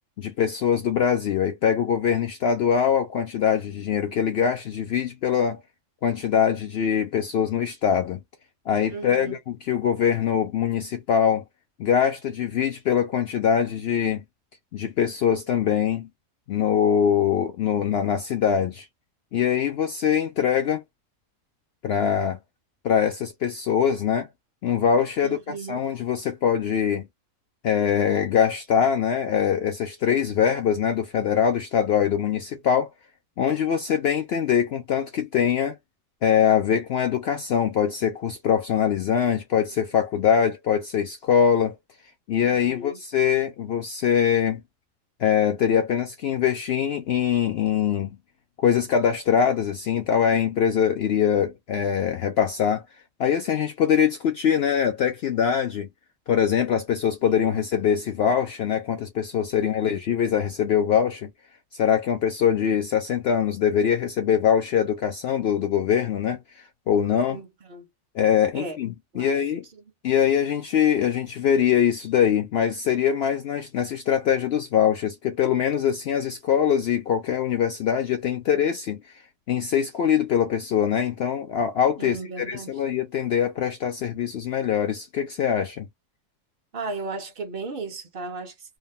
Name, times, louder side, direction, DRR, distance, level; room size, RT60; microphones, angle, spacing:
voice 1, 0.2-5.6 6.0-8.2 8.7-11.4 11.8-14.2 14.7-16.1 16.5-18.9 19.3-20.8 21.8-22.4 22.8-24.3 24.6-27.1 27.6-32.9 33.4-35.8 36.2-41.8 42.3-44.6 45.2-48.1 48.6-52.8 53.2-55.9 56.3-61.3 61.7-66.4 66.9-67.4 68.1-69.6 70.0-79.0 79.5-85.9, left 8 dB, 65° left, 0.7 m, -23 dB
voice 2, 8.9-9.4 25.2-25.9 42.5-43.0 57.2-57.6 59.5-60.0 67.3-67.9 68.5-68.8 69.1-69.4 69.7-69.8 82.0-82.8 86.7-88.8, right 3 dB, 50° right, 0.9 m, -36 dB
3.5 x 2.2 x 2.3 m
omnidirectional pair, 1.4 m